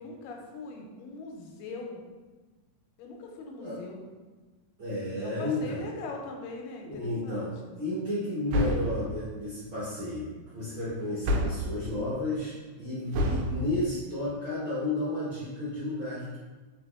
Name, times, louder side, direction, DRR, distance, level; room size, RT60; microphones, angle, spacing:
voice 1, 0.0-2.0 3.0-4.0 5.2-7.7, left 3 dB, 85° left, 1 dB, 2.3 m, -41 dB
voice 2, 4.8-5.9 6.8-16.4, left 1 dB, 60° right, -10 dB, 1.3 m, -32 dB
sound 1, 8.5-9.0 11.2-11.7 13.1-13.5, equal, 80° right, 2.0 m, -27 dB
4.8 x 3.9 x 2.4 m, 1.3 s
omnidirectional pair, 3.8 m